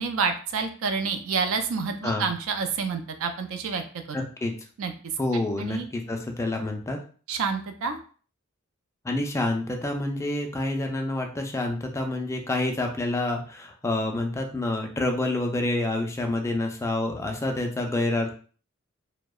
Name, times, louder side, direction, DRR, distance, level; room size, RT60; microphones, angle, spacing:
voice 1, 0.0-4.3 4.8-4.9 5.6-5.9 7.3-8.0, right 5 dB, 70° right, 6 dB, 0.4 m, -28 dB
voice 2, 4.1-4.5 5.2-7.0 9.0-18.3, left 2 dB, 15° left, 3 dB, 0.3 m, -28 dB
2.7 x 2.0 x 2.3 m, 0.41 s
head